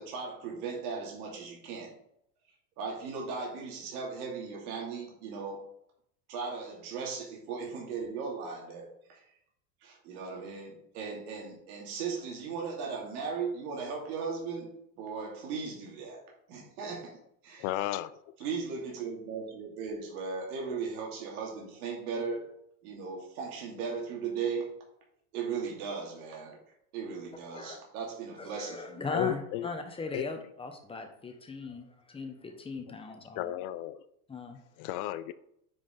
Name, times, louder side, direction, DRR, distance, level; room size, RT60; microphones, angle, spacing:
voice 1, 0.0-1.9 2.8-5.6 6.3-9.2 9.8-14.7 15.0-16.2 16.5-17.2 17.4-17.8 18.4-22.5 22.8-24.7 25.3-26.6 26.9-29.2, right 5 dB, 75° right, 2.7 m, -37 dB
voice 2, 17.6-18.2 29.1-29.7 30.1-30.3 33.4-34.0 34.8-35.3, left 14 dB, 45° left, 0.5 m, -33 dB
voice 3, 28.4-33.5 34.3-34.6, left 3 dB, 10° left, 1.1 m, -39 dB
9.6 x 5.0 x 3.8 m
supercardioid pair, 135°, 45 cm